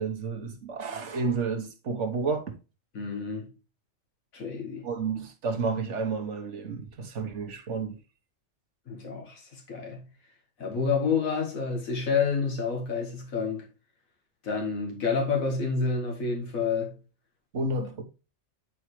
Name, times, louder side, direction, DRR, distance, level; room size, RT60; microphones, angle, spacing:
voice 1, 0.0-2.6 4.8-7.9 17.5-18.0, right 4 dB, 60° right, 1.4 m, -31 dB
voice 2, 3.0-3.5 4.3-4.9 8.9-10.1 10.6-13.6 14.4-17.0, left 5 dB, 85° left, 1.9 m, -29 dB
9.4 x 4.7 x 3.1 m
omnidirectional pair, 1.4 m